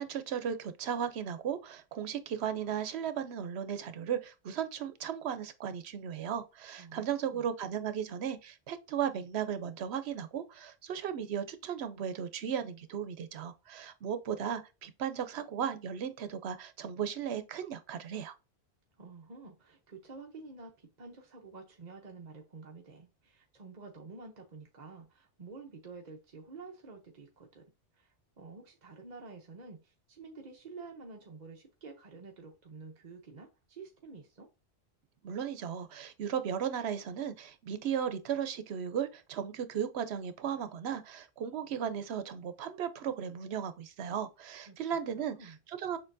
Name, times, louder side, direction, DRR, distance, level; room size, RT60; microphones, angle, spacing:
voice 1, 0.0-18.3 35.2-46.0, right 8 dB, 80° right, 0.9 m, -36 dB
voice 2, 6.8-7.4 19.0-27.6 27.9-34.5 44.7-44.8 45.1-45.6, right 4 dB, 45° right, 0.8 m, -49 dB
6.8 x 2.7 x 2.6 m
omnidirectional pair, 1.1 m